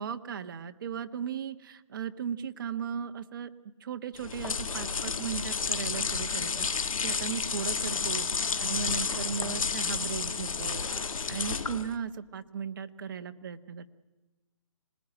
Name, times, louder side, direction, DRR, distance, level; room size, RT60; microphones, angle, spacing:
voice 1, 0.0-3.5 3.8-8.3 8.6-10.9 11.3-13.9, right 7 dB, 40° right, 8 dB, 1.2 m, -37 dB
sound 1, 4.2-12.0, left 5 dB, 90° left, 1.9 m, -31 dB
25.5 x 20.0 x 9.9 m, 1.1 s
hypercardioid pair, 170°, 17 cm